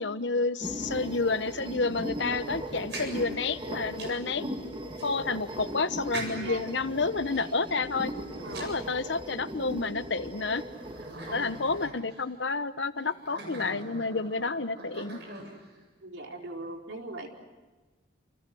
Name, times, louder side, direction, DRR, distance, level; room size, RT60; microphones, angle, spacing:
voice 1, 0.0-4.6 5.0-8.1 8.6-10.6 11.3-15.2, left 3 dB, 80° left, 12 dB, 1.1 m, -30 dB
sound 1, 0.6-11.9, equal, 25° right, 1.7 m, -38 dB
sound 2, 2.7-4.3 5.0-5.1 6.1-6.7 7.2-9.4 10.0-10.1 10.7-12.3 13.0-15.8, right 2 dB, 70° right, 7.5 m, -43 dB
voice 2, 16.0-17.3, right 2 dB, 90° right, 1 dB, 4.5 m, -40 dB
28.5 x 28.0 x 6.4 m, 1.2 s
head